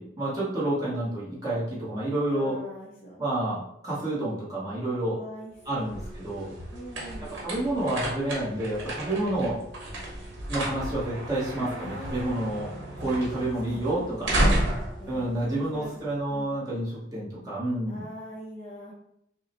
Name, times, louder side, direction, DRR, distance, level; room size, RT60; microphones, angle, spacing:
voice 1, 0.0-2.6 3.2-5.2 5.7-6.5 7.4-9.6 10.5-14.4 15.1-18.0, right 1 dB, 20° right, -8 dB, 0.9 m, -29 dB
voice 2, 2.3-3.2 5.1-6.0 6.7-7.4 11.6-12.4 14.0-16.0 16.3-16.6 17.9-18.9, equal, 30° left, -6 dB, 0.6 m, -43 dB
sound 1, 5.6-16.3, right 1 dB, 60° right, 1.1 m, -32 dB
5.5 x 2.1 x 2.9 m, 0.77 s
head